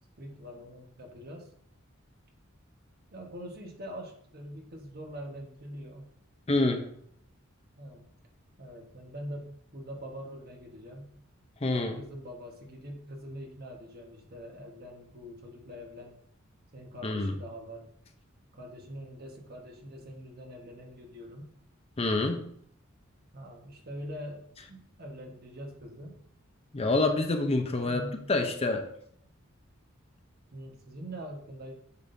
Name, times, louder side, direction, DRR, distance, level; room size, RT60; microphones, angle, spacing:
voice 1, 0.2-1.5 3.1-6.1 7.8-8.1 8.6-11.2 11.9-16.1 16.7-17.9 18.5-21.5 23.3-24.4 24.7-26.2 27.9-28.3 30.5-31.7, equal, 50° right, 1 dB, 1.3 m, -43 dB
voice 2, 6.5-6.8 11.6-12.0 17.0-17.3 22.0-22.4 26.7-28.0 28.3-28.9, left 2 dB, 30° left, 5 dB, 0.7 m, -27 dB
8.2 x 6.0 x 2.7 m, 0.67 s
head